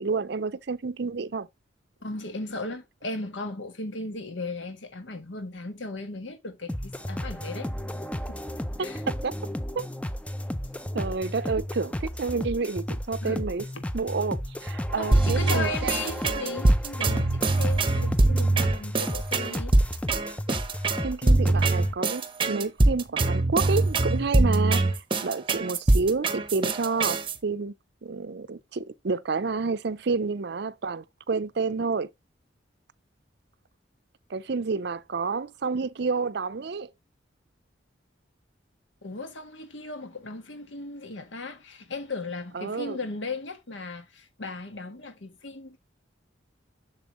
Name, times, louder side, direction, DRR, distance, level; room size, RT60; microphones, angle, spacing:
voice 1, 0.0-1.5 8.8-9.3 9.8-9.9 10.9-13.6 13.9-16.0 21.0-24.8 25.2-27.7 28.0-32.1 34.3-36.9 42.5-43.0, right 4 dB, 60° right, 0.5 m, -29 dB
voice 2, 2.0-7.7 8.3-8.4 8.8-9.0 13.2-13.4 15.0-19.8 39.0-45.8, left 3 dB, 75° left, 1.5 m, -36 dB
sound 1, 6.7-21.9, equal, 5° left, 0.5 m, -34 dB
sound 2, 15.1-27.4, right 2 dB, 25° right, 0.8 m, -23 dB
7.2 x 6.9 x 3.0 m
head